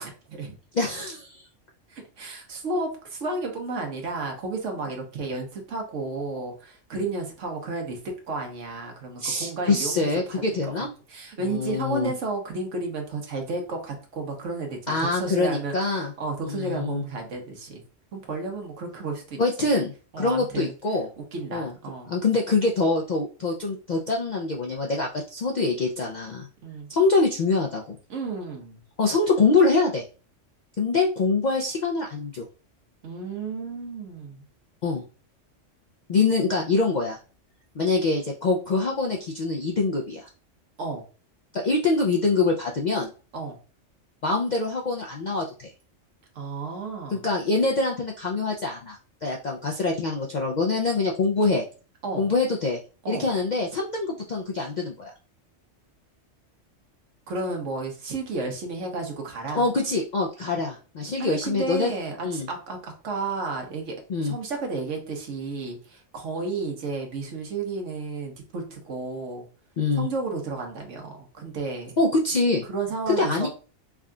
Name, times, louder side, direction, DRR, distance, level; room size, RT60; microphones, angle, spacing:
voice 1, 0.0-0.6 1.9-10.4 11.1-17.8 18.1-19.7 20.1-20.7 21.2-22.1 26.6-26.9 28.1-28.8 33.0-34.4 40.8-41.0 43.3-43.6 46.3-47.3 52.0-52.3 53.0-53.3 57.3-59.7 61.2-64.0 64.2-69.5 70.0-72.0 72.6-73.5, right 3 dB, 75° right, 2 dB, 1.3 m, -32 dB
voice 2, 0.7-1.4 9.2-10.9 11.4-12.1 14.9-16.1 16.4-17.0 19.4-21.1 21.5-21.7 22.1-26.5 26.9-28.0 29.0-30.0 30.8-32.5 34.8-35.0 36.1-37.2 37.8-40.3 41.5-43.1 44.2-45.7 47.1-51.6 52.2-52.8 53.1-55.1 59.5-61.9 62.2-62.5 64.1-64.4 69.8-70.1 72.0-72.6 73.1-73.5, left 3 dB, 60° left, -1 dB, 0.4 m, -24 dB
3.6 x 2.2 x 3.7 m, 0.37 s
omnidirectional pair, 1.3 m